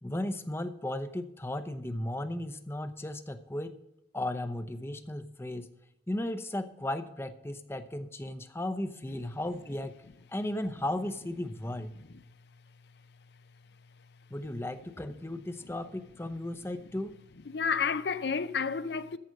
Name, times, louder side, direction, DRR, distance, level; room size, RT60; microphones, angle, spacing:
voice 1, 0.0-3.8 4.1-5.7 6.1-9.9 10.3-11.9 14.3-17.2, left 1 dB, 15° left, 0.7 m, -35 dB
voice 2, 17.5-19.2, left 6 dB, 65° left, 0.6 m, -31 dB
14.5 x 5.1 x 6.4 m
head